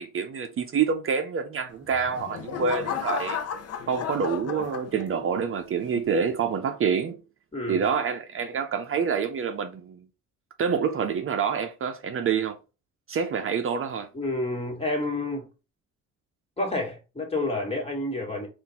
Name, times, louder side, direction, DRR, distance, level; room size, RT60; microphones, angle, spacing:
voice 1, 0.0-3.4 3.9-7.2 7.7-10.1 10.6-12.6 13.1-14.1, right 6 dB, 45° right, 0.6 m, -27 dB
sound 1, 1.8-5.4 5.9-6.3, left 7 dB, 55° left, 0.7 m, -33 dB
voice 2, 7.5-7.8 14.1-15.5 16.6-18.5, left 2 dB, 20° left, 1.8 m, -29 dB
3.8 x 2.5 x 4.2 m
cardioid pair, 90°, 30 cm